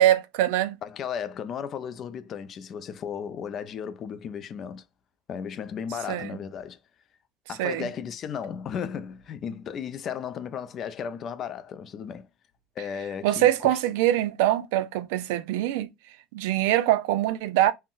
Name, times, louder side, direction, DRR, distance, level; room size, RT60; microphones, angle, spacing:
voice 1, 0.0-0.8 6.1-6.4 7.6-7.9 13.2-15.9 16.3-17.7, right 13 dB, 85° right, 0.3 m, -23 dB
voice 2, 0.8-4.8 5.3-6.8 7.5-12.3 12.8-13.7, left 7 dB, 30° left, 0.3 m, -35 dB
3.7 x 2.0 x 2.3 m
cardioid pair, 165°, 0 cm